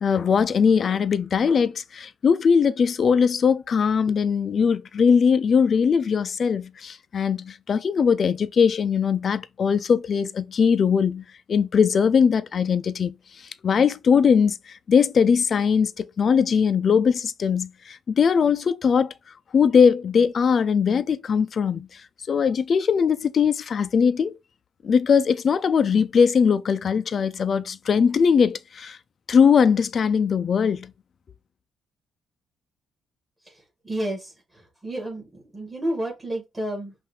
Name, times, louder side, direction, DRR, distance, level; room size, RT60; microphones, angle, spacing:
voice 1, 0.0-11.2 11.5-13.1 13.6-19.1 19.5-22.0 22.3-24.4 24.8-29.0 29.3-30.9, left 6 dB, 50° left, 0.5 m, -20 dB
voice 2, 33.8-36.9, right 1 dB, 15° right, 2.2 m, -31 dB
5.6 x 2.6 x 3.3 m
cardioid pair, 90°, 0 cm